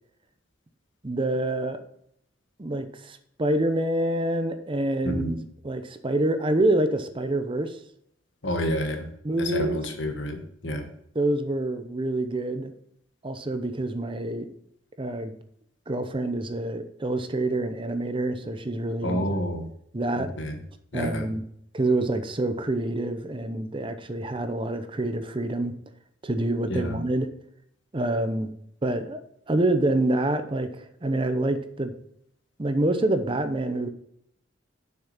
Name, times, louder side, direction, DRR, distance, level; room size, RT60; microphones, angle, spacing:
voice 1, 1.0-1.8 2.6-5.3 5.6-7.8 9.2-9.8 11.1-12.7 13.2-14.5 15.0-15.4 15.9-19.2 19.9-20.3 20.9-21.4 21.7-25.8 26.2-27.3 27.9-28.5 28.8-29.2 29.5-31.9 32.6-33.9, right 1 dB, 25° right, 9 dB, 0.7 m, -26 dB
voice 2, 5.0-5.4 8.4-9.1 9.4-10.9 19.0-19.7 20.1-20.6 20.9-21.3 26.7-27.0, equal, 70° left, 6 dB, 1.3 m, -29 dB
7.1 x 6.2 x 5.6 m, 0.72 s
head